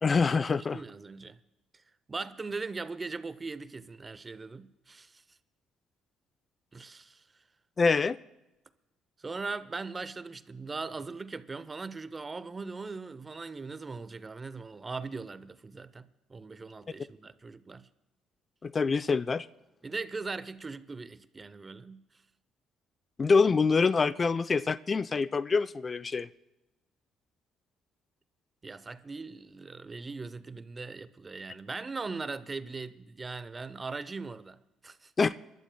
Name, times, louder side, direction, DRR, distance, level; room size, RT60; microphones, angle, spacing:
voice 1, 0.0-0.8 7.8-8.2 18.6-19.5 23.2-26.3 35.2-35.3, left 4 dB, 35° left, 0.3 m, -25 dB
voice 2, 0.7-1.4 2.1-5.2 6.7-7.3 9.2-17.9 19.8-22.1 28.6-35.3, right 4 dB, 30° right, 0.6 m, -40 dB
28.5 x 12.0 x 2.3 m
hypercardioid pair, 60°, 0 cm